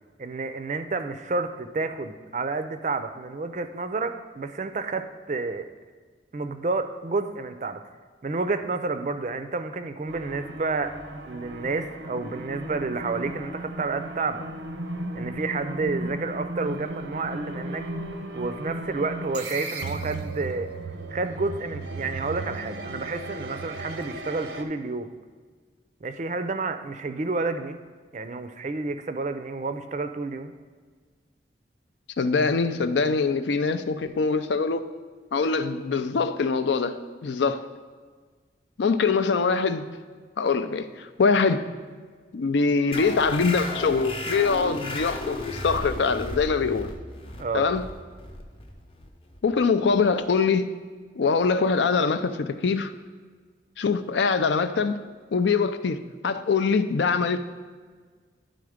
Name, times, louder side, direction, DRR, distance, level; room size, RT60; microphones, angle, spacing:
voice 1, 0.2-5.7 6.3-7.8 8.2-11.0 11.2-14.4 15.1-17.9 18.3-20.7 21.1-25.1 26.0-27.8 28.1-30.5 47.4-47.7, right 3 dB, 40° right, 9 dB, 0.4 m, -30 dB
sound 1, 10.1-24.6, right 2 dB, 80° right, 0.6 m, -36 dB
voice 2, 32.2-34.9 35.3-37.6 38.8-39.9 40.4-41.6 42.3-46.9 47.5-47.8 49.4-50.8 51.2-52.9 53.8-55.0 55.3-57.4, left 4 dB, 75° left, 11 dB, 0.4 m, -23 dB
Time Shift, 42.9-50.0, left 2 dB, 30° left, 0.7 m, -34 dB
10.5 x 3.8 x 4.9 m, 1.5 s
head